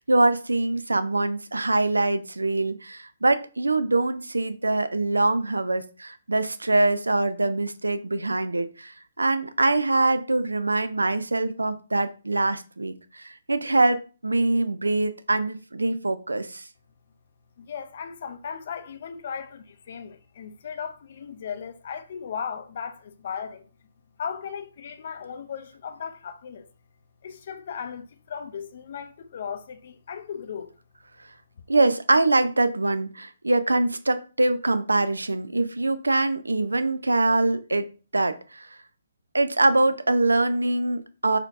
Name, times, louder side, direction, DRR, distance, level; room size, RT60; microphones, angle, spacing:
voice 1, 0.0-16.6 31.7-37.9 38.1-38.7 39.3-41.4, right 2 dB, 85° right, 0.3 m, -24 dB
voice 2, 17.6-23.7 24.2-26.7 27.2-30.7, left 7 dB, 50° left, 0.4 m, -36 dB
4.2 x 2.8 x 2.5 m
figure-of-eight pair, 135°, 0 cm